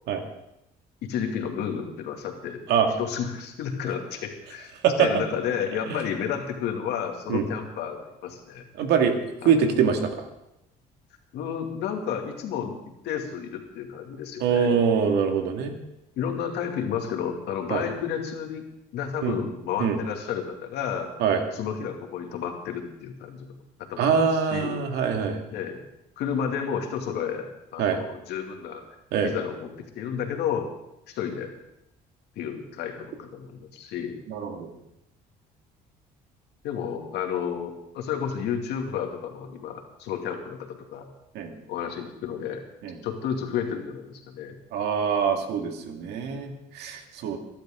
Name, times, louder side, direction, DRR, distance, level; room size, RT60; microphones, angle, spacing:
voice 1, 1.0-2.6 3.0-8.6 9.4-9.5 11.3-14.7 16.2-18.7 18.9-21.1 21.5-23.5 23.9-24.8 25.5-25.8 26.2-28.8 29.2-29.7 30.0-30.7 31.1-31.5 32.4-34.2 36.6-41.1 41.7-42.6 43.0-44.5, left 8 dB, 80° left, 3 dB, 2.4 m, -31 dB
voice 2, 4.8-5.2 5.9-6.0 7.3-7.5 8.8-10.3 14.4-15.7 17.7-17.9 19.2-19.4 19.8-20.0 21.2-21.4 24.0-25.4 27.8-28.0 29.1-29.3 34.3-34.7 41.3-41.5 42.8-43.0 44.7-47.4, right 7 dB, 80° right, 5 dB, 2.1 m, -24 dB
23.0 x 11.5 x 3.8 m, 0.85 s
cardioid pair, 110°, 17 cm